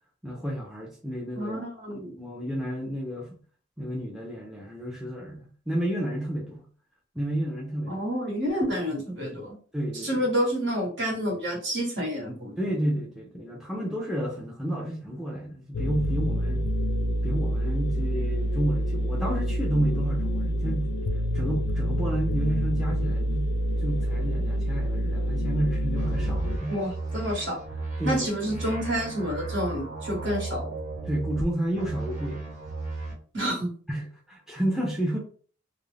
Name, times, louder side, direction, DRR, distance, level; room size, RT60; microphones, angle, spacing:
voice 1, 0.2-1.6 1.9-3.4 3.8-6.7 7.1-8.0 9.3-9.4 9.7-10.2 12.6-16.7 17.2-20.9 21.3-23.5 23.8-26.8 28.0-28.3 31.1-32.4 33.9-35.2, right 1 dB, ahead, 0.5 m, -31 dB
voice 2, 1.4-2.1 7.9-9.6 9.9-12.5 26.7-27.6 28.0-30.7 33.3-33.7, equal, 65° right, 1.2 m, -29 dB
sound 1, 15.7-26.6, equal, 60° left, 0.3 m, -27 dB
sound 2, 26.0-31.5 31.7-33.1, right 3 dB, 40° right, 1.1 m, -35 dB
2.4 x 2.0 x 3.2 m
head